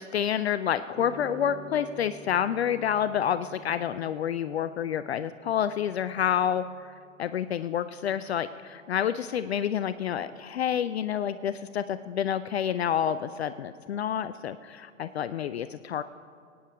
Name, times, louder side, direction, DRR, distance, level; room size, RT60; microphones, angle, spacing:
voice 1, 0.0-6.9 7.2-16.0, left 9 dB, 55° left, 13 dB, 0.5 m, -29 dB
sound 1, 0.9-9.5, right 3 dB, 15° right, 2.3 m, -50 dB
21.5 x 9.4 x 4.9 m, 2.2 s
figure-of-eight pair, 110°, 39 cm